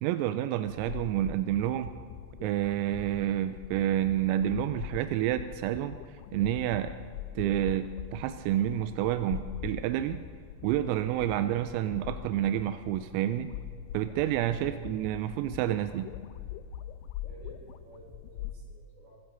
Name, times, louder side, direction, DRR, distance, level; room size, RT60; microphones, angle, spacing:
voice 1, 0.0-1.9 2.4-6.0 6.3-6.9 7.4-10.2 10.6-13.5 13.9-16.1, right 12 dB, 90° right, 10 dB, 3.3 m, -29 dB
sound 1, 0.7-18.6, left 10 dB, 90° left, 2.7 m, -43 dB
voice 2, 14.5-15.1 17.2-19.1, right 2 dB, 50° right, -2 dB, 5.4 m, -53 dB
23.5 x 13.0 x 3.9 m, 2.2 s
omnidirectional pair, 6.0 m